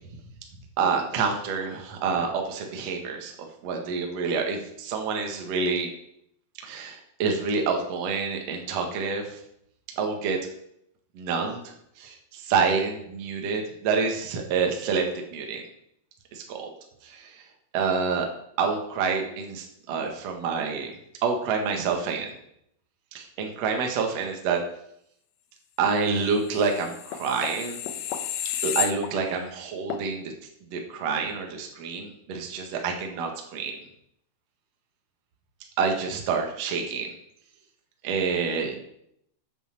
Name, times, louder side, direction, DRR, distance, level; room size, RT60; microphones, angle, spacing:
voice 1, 0.8-5.9 6.6-9.4 9.9-10.5 11.1-15.6 16.3-16.7 17.0-17.4 17.7-18.3 18.6-20.9 21.2-22.3 23.1-24.6 25.8-27.8 28.6-30.3 30.7-33.8 35.8-37.1 38.0-38.8, right 5 dB, 65° right, 2 dB, 1.6 m, -28 dB
sound 1, 26.6-29.5 29.9-30.1, left 11 dB, 80° left, 3.0 m, -32 dB
8.3 x 8.2 x 7.5 m, 0.75 s
omnidirectional pair, 5.7 m